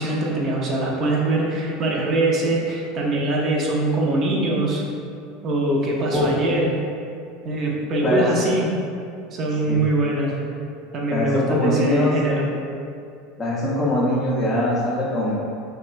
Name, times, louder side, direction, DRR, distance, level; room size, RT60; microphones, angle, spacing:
voice 1, 0.0-4.8 5.4-6.8 7.4-8.7 9.3-10.4 10.9-12.5, right 2 dB, 45° right, -2 dB, 0.5 m, -22 dB
voice 2, 11.1-12.2 13.4-15.4, left 1 dB, 25° left, -7 dB, 0.5 m, -22 dB
2.8 x 2.2 x 2.4 m, 2.5 s
hypercardioid pair, 90°, 0 cm